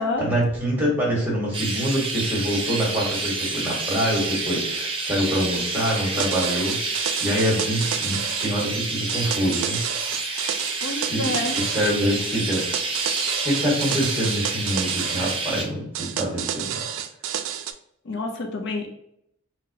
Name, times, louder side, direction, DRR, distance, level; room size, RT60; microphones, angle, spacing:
voice 1, 0.2-9.8 10.9-12.7 13.4-16.8, equal, 10° right, -5 dB, 1.3 m, -25 dB
Chirp tweet, 1.5-15.6, right 3 dB, 25° right, 0.6 m, -29 dB
sound 1, 6.2-8.5 9.1-12.0 12.5-15.4 15.9-17.7, right 9 dB, 85° right, 0.3 m, -30 dB
voice 2, 10.8-11.6 18.1-18.9, left 2 dB, 60° left, 2 dB, 0.4 m, -28 dB
3.7 x 2.2 x 2.7 m, 0.75 s
head